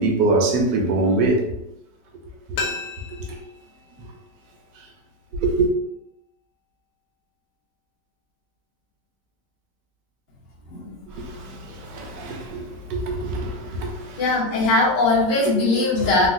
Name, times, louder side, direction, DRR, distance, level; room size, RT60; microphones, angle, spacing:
voice 1, 0.0-1.6 2.6-2.7 5.4-5.7 11.1-14.2 16.0-16.1, right 2 dB, 85° right, 1.3 m, -24 dB
sound 1, 2.6-5.4 5.6-5.7, left 4 dB, 65° left, 0.9 m, -35 dB
voice 2, 14.2-16.3, left 3 dB, 85° left, 1.5 m, -20 dB
3.5 x 2.4 x 2.5 m
omnidirectional pair, 1.9 m